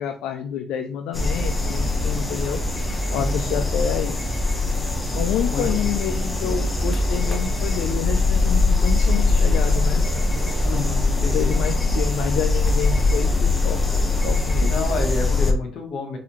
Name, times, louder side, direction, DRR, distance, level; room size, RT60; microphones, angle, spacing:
voice 1, 0.0-2.6 3.1-4.2 5.1-10.0 11.3-13.8 14.2-14.9, left 9 dB, 85° left, 5 dB, 0.3 m, -28 dB
sound 1, 1.1-15.5, left 2 dB, 15° left, 0.6 m, -21 dB
voice 2, 3.1-3.5 5.5-5.6 10.6-11.5 14.6-16.2, left 4 dB, 65° left, 2 dB, 1.0 m, -29 dB
3.9 x 2.7 x 2.9 m, 0.43 s
cardioid pair, 130°, 0 cm